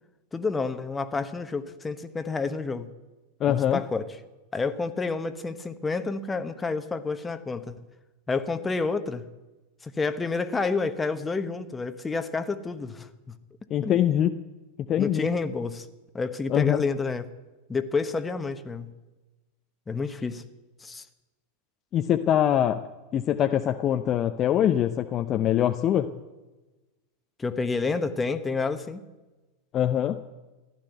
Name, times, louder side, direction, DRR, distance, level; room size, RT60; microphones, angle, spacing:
voice 1, 0.3-2.9 3.5-4.1 4.5-7.7 8.3-9.3 9.8-13.3 13.8-14.0 15.0-15.9 16.1-17.2 17.7-18.9 19.9-20.4 20.8-21.1 27.4-29.0, left 4 dB, 15° left, 9 dB, 1.2 m, -29 dB
voice 2, 3.4-3.8 13.7-14.3 14.9-15.3 16.5-16.8 21.9-22.8 23.1-26.1 29.7-30.2, left 10 dB, 35° left, 7 dB, 0.7 m, -23 dB
15.5 x 12.0 x 7.9 m, 1.1 s
figure-of-eight pair, 90°, 0 cm